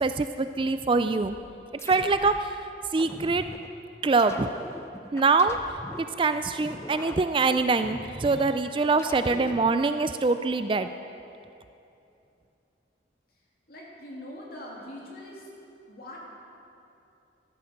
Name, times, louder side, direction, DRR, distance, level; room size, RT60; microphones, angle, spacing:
voice 1, 0.0-1.3 1.9-2.5 2.9-3.5 4.0-4.5 5.1-5.6 6.2-10.9, right 3 dB, 25° right, 10 dB, 0.3 m, -24 dB
sound 1, 1.2-2.5 3.0-3.7 4.2-6.1 6.6-8.5 9.0-9.7, left 1 dB, 15° left, 0.6 m, -42 dB
voice 2, 13.7-15.5 15.9-16.2, left 1 dB, 50° left, -3 dB, 2.9 m, -42 dB
13.5 x 12.5 x 6.6 m, 2.7 s
head